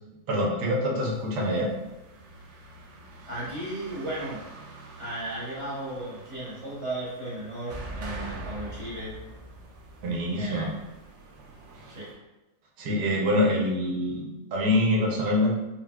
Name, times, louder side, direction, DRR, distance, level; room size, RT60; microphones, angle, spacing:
voice 1, 0.3-1.7 10.0-10.7 12.8-15.6, left 1 dB, 85° right, -2 dB, 1.2 m, -25 dB
sound 1, 1.1-12.1, right 2 dB, 65° right, 0.7 m, -44 dB
voice 2, 3.3-4.4 5.0-9.2 10.4-10.8 11.8-12.1, right 1 dB, 25° right, -9 dB, 0.7 m, -35 dB
4.2 x 2.2 x 2.2 m, 1.0 s
omnidirectional pair, 1.7 m